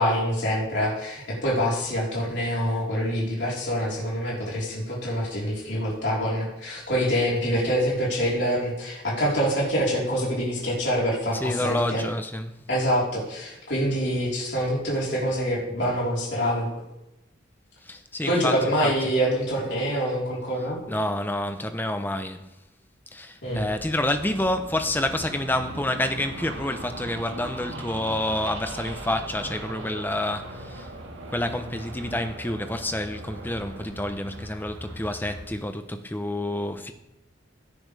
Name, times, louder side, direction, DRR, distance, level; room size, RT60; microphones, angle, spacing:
voice 1, 0.0-12.1 12.7-16.7 18.3-20.8 23.4-23.6, equal, 65° left, 4.2 m, -25 dB
voice 2, 11.4-12.5 17.9-18.5 18.8-18.9 20.9-22.5 23.1-30.9 31.3-36.9, left 1 dB, 10° left, 0.8 m, -28 dB
sound 1, 23.5-35.5, right 1 dB, 90° right, 2.0 m, -39 dB
16.5 x 10.5 x 3.5 m
head